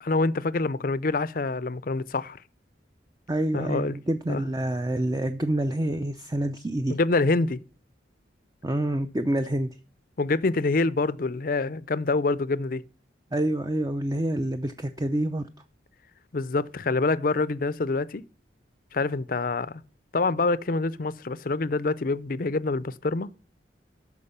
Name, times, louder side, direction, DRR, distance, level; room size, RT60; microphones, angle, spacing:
voice 1, 0.0-2.4 3.5-3.9 4.3-4.4 6.9-7.6 10.2-12.8 16.3-18.2 18.9-19.8 20.1-23.3, left 3 dB, 50° left, 0.5 m, -26 dB
voice 2, 3.3-7.0 8.6-9.7 13.3-15.5, right 1 dB, 20° right, 0.5 m, -27 dB
13.0 x 5.1 x 5.5 m
head